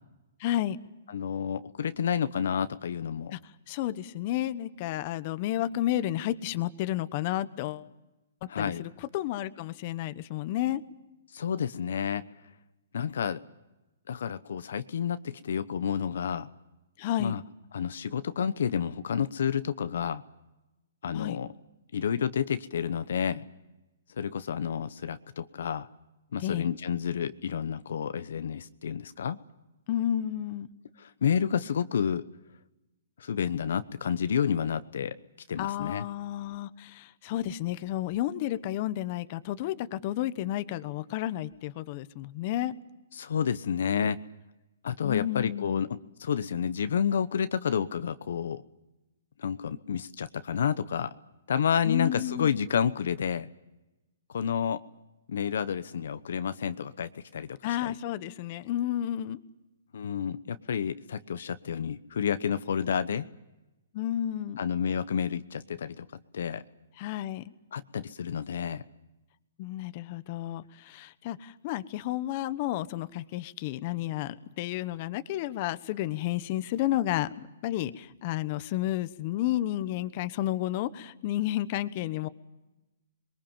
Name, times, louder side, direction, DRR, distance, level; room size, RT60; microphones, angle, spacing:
voice 1, 0.4-0.8 3.3-3.4 3.7-7.9 8.6-10.8 17.0-17.3 21.1-21.4 26.4-26.7 29.9-30.7 35.6-42.7 45.0-45.8 51.8-52.5 57.6-59.4 63.9-64.6 67.0-67.4 69.6-82.3, left 13 dB, 40° left, 13 dB, 1.1 m, -31 dB
voice 2, 1.1-3.3 8.5-8.8 11.3-12.2 12.9-13.4 14.1-16.5 17.2-17.4 17.7-20.2 21.0-21.5 21.9-23.4 24.2-25.9 26.3-29.4 31.0-32.3 33.2-35.2 35.5-36.0 43.1-44.2 44.8-48.6 49.4-51.1 51.5-53.5 54.3-54.8 55.3-57.9 59.9-63.2 64.6-66.1 66.3-66.6 67.7-68.8, left 7 dB, 70° left, 12 dB, 1.0 m, -30 dB
27.5 x 22.5 x 7.3 m, 1.0 s
hypercardioid pair, 150°, 0 cm